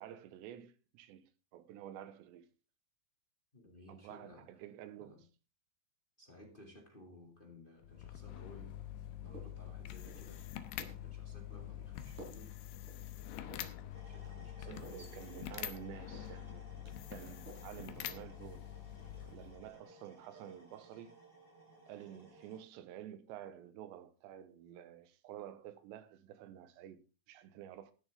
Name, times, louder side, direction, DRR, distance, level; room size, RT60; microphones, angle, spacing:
voice 1, 0.0-2.5 3.9-5.2 10.9-11.0 14.6-16.7 17.1-18.7 19.1-21.2 21.9-27.9, right 11 dB, 80° right, 3.1 m, -50 dB
voice 2, 3.5-4.6 4.9-5.2 6.2-8.8 9.0-10.7 11.0-12.5 13.2-15.3, left 1 dB, 30° left, 0.9 m, -57 dB
sound 1, 7.8-19.8, left 11 dB, 75° left, 2.6 m, -46 dB
sound 2, 8.9-9.1 9.3-9.7 10.1-10.3 10.8-11.0 11.5-11.7 12.2-12.5 12.9-13.0 13.5-13.8 14.2-15.1 15.5-15.7 16.1-16.5 16.8-17.7 18.1-18.5, right 1 dB, 40° right, 5.9 m, -55 dB
sound 3, 13.9-22.6, right 2 dB, 5° left, 5.6 m, -60 dB
15.5 x 10.5 x 3.6 m
omnidirectional pair, 5.4 m